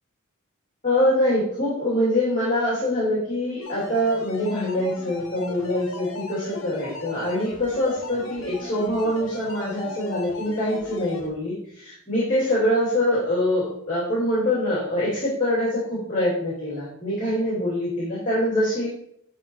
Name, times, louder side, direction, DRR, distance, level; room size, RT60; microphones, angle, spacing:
voice 1, 0.8-18.9, left 1 dB, 40° left, -8 dB, 2.7 m, -24 dB
sound 1, 3.6-11.3, left 3 dB, 70° left, 1.4 m, -38 dB
8.8 x 4.2 x 4.6 m, 0.71 s
head